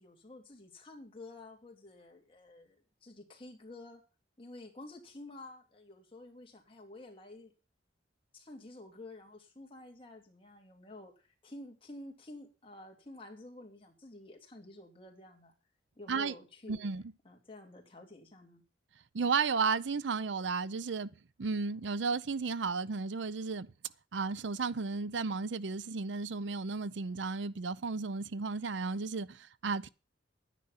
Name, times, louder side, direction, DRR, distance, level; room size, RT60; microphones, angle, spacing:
voice 1, 0.0-4.0 4.4-7.5 8.3-15.5 16.0-16.8 17.2-18.6, left 2 dB, 30° left, 2.6 m, -50 dB
voice 2, 16.7-17.0 19.1-21.1 21.4-23.7 24.1-29.9, right 4 dB, 75° right, 0.6 m, -33 dB
11.0 x 9.9 x 5.7 m
head